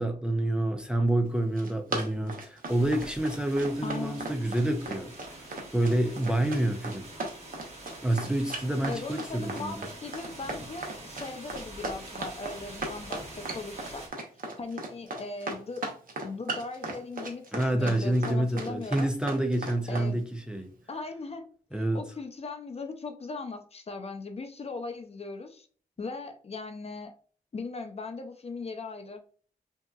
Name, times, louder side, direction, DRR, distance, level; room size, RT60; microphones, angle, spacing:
voice 1, 0.0-5.1 5.7-7.1 8.0-9.8 17.5-20.7 21.7-22.0, right 1 dB, 5° right, 0.5 m, -28 dB
Run, 1.4-20.1, right 2 dB, 60° right, 0.9 m, -37 dB
sound 1, 2.7-14.1, right 1 dB, 45° right, 1.4 m, -46 dB
voice 2, 3.8-4.3 8.9-14.0 14.6-15.9 16.2-19.1 19.9-20.2 20.9-21.5 21.7-25.7 26.0-27.1 27.5-29.2, left 3 dB, 40° left, 0.5 m, -39 dB
5.5 x 2.8 x 2.3 m
wide cardioid pair, 165°, 16 cm